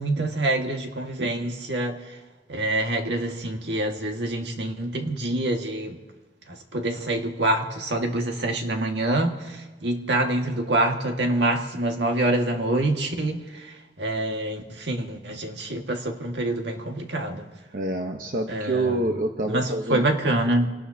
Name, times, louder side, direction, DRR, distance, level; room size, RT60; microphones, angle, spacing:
voice 1, 0.0-2.0 2.5-6.0 6.7-9.4 9.8-13.4 14.0-17.5 18.5-18.9 19.5-20.7, right 1 dB, 80° right, 3 dB, 1.8 m, -26 dB
voice 2, 17.7-20.1, right 2 dB, 50° right, 3 dB, 1.0 m, -27 dB
27.5 x 18.5 x 2.8 m, 1.2 s
head